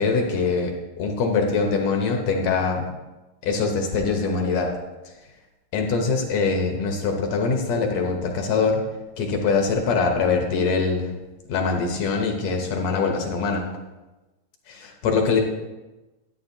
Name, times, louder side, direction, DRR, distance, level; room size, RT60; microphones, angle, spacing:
voice 1, 0.0-2.9 3.4-4.7 5.1-5.2 5.7-8.8 9.2-11.1 11.5-13.6 14.7-15.4, left 4 dB, 70° left, 3 dB, 2.0 m, -23 dB
11.5 x 10.0 x 2.7 m, 1.1 s
omnidirectional pair, 3.5 m